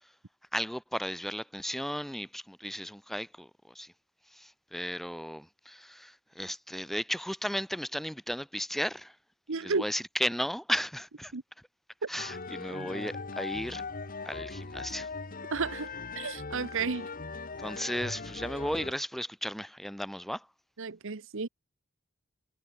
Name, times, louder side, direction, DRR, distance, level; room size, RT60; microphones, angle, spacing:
voice 1, 0.5-3.9 4.3-9.2 9.6-11.3 12.1-13.8 14.2-15.1 17.6-20.5, equal, ahead, 0.9 m, -35 dB
voice 2, 9.5-9.8 11.3-11.4 12.0-12.1 15.5-15.9 16.1-17.1 20.8-21.5, right 4 dB, 65° right, 1.0 m, -32 dB
sound 1, 12.2-18.9, left 4 dB, 40° left, 1.7 m, -39 dB
head